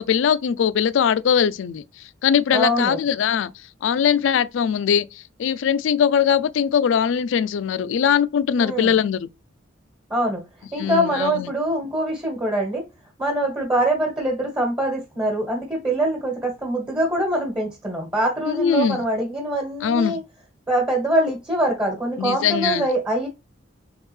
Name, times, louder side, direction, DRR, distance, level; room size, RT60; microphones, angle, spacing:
voice 1, 0.0-9.3 10.8-11.5 18.5-19.0 19.8-20.2 22.2-22.9, left 7 dB, 75° left, 0.3 m, -21 dB
voice 2, 2.5-3.0 8.6-9.0 10.1-10.4 10.7-12.8 13.2-20.2 20.7-23.3, right 1 dB, 20° right, 1.2 m, -23 dB
3.5 x 3.5 x 3.2 m
head